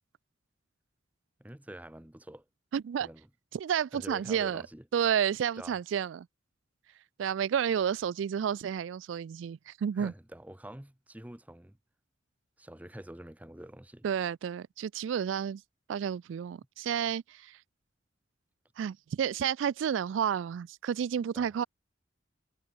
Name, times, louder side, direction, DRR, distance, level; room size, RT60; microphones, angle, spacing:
voice 1, 1.4-2.4 3.0-3.3 3.9-4.9 5.6-5.8 9.9-11.8 12.6-14.1 21.3-21.7, right 1 dB, 10° right, 0.7 m, -46 dB
voice 2, 2.7-3.1 3.5-4.6 4.9-6.3 7.2-10.1 14.0-15.6 15.9-17.6 18.8-21.6, right 8 dB, 80° right, 0.3 m, -31 dB
head